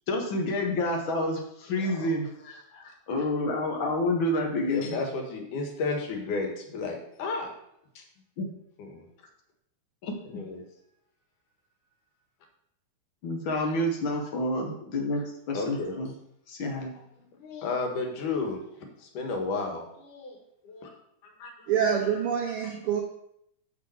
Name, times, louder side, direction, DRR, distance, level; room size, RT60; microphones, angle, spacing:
voice 1, 0.1-2.3 2.7-5.0 8.4-8.5 10.0-10.1 13.2-15.2 15.5-16.1 16.5-16.9, left 1 dB, 60° left, 1 dB, 1.3 m, -28 dB
voice 2, 1.7-2.1 2.4-2.9 4.6-7.5 7.9-8.0 8.8-9.1 10.2-10.6 13.5-13.8 15.5-16.0 16.9-20.4 20.6-20.9 21.2-21.7 22.0-22.2, left 3 dB, 85° left, 2 dB, 2.9 m, -34 dB
voice 3, 21.7-23.0, right 8 dB, 85° right, 2 dB, 1.2 m, -26 dB
7.0 x 6.5 x 4.3 m, 0.76 s
omnidirectional pair, 3.5 m